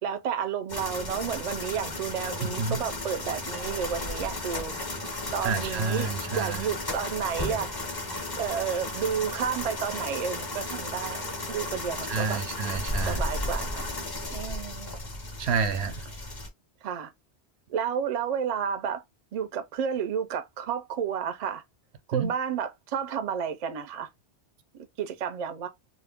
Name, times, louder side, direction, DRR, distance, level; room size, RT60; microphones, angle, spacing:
voice 1, 0.0-4.9 5.3-7.7 8.4-12.4 13.0-13.9 14.3-15.0 16.8-17.1 17.7-19.0 19.3-21.6 22.1-24.1 24.7-25.7, right 7 dB, 55° right, 0.4 m, -31 dB
sound 1, 0.7-16.5, left 2 dB, 25° left, 0.5 m, -34 dB
voice 2, 2.4-2.8 5.4-6.7 12.1-13.2 15.4-16.0 22.1-22.3, right 5 dB, 80° right, 0.8 m, -29 dB
2.3 x 2.0 x 3.4 m
omnidirectional pair, 1.1 m